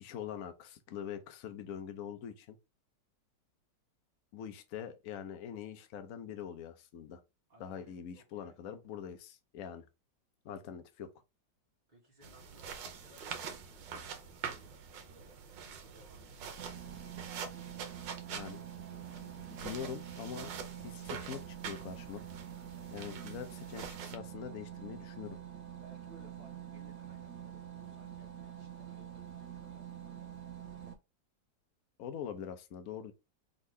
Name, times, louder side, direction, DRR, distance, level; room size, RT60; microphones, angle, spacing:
voice 1, 0.0-2.6 4.3-7.2 7.6-9.9 10.4-11.1 18.3-20.5 20.8-22.2 22.9-25.4 32.0-33.1, left 8 dB, 60° left, 1.0 m, -44 dB
voice 2, 7.5-8.6 11.9-16.9 17.5-18.6 25.8-29.9, right 1 dB, 25° right, 1.4 m, -62 dB
sound 1, 12.2-24.2, right 6 dB, 80° right, 1.5 m, -45 dB
sound 2, 16.6-30.9, right 11 dB, 60° right, 1.1 m, -46 dB
4.0 x 3.7 x 3.2 m
omnidirectional pair, 2.0 m